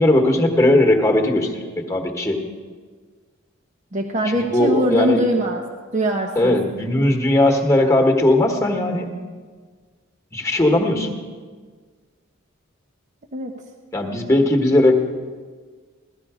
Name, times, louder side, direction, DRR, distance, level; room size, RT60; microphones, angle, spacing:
voice 1, 0.0-2.4 4.2-5.2 6.3-9.1 10.3-11.1 13.9-14.9, left 1 dB, 15° left, 3 dB, 1.4 m, -18 dB
voice 2, 3.9-5.6 5.9-6.6 13.3-13.5, equal, 35° right, 1 dB, 0.9 m, -22 dB
17.0 x 13.0 x 5.0 m, 1.5 s
head